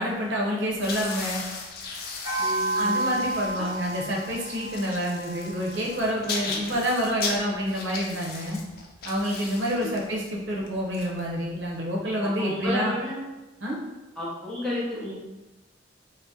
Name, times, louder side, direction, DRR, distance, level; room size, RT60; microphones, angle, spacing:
voice 1, 0.0-1.4 2.8-8.6 9.0-12.9 13.6-13.8, equal, 75° right, -3 dB, 0.6 m, -28 dB
sound 1, 0.7-11.7, left 4 dB, 50° left, 0.4 m, -37 dB
sound 2, 2.2-6.8, right 2 dB, 35° right, 0.9 m, -31 dB
voice 2, 2.4-3.7 6.5-6.7 9.8-10.0 12.2-13.2 14.2-15.1, left 1 dB, 5° left, -9 dB, 0.7 m, -33 dB
2.6 x 2.0 x 3.6 m, 1.1 s
head